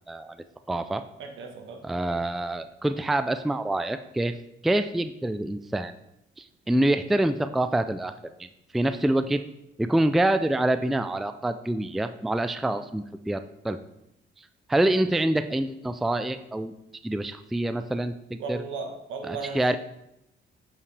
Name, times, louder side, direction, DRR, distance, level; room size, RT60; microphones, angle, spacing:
voice 1, 0.7-1.0 1.8-4.4 4.6-5.9 6.4-8.1 8.4-8.5 8.7-9.4 9.8-13.8 14.7-16.7 17.0-18.6 19.2-19.8, right 1 dB, ahead, 10 dB, 0.3 m, -26 dB
voice 2, 1.2-1.9 12.6-12.8 18.4-19.7, right 4 dB, 80° right, 4 dB, 1.3 m, -36 dB
7.2 x 5.5 x 3.3 m, 0.82 s
cardioid pair, 90°, 20 cm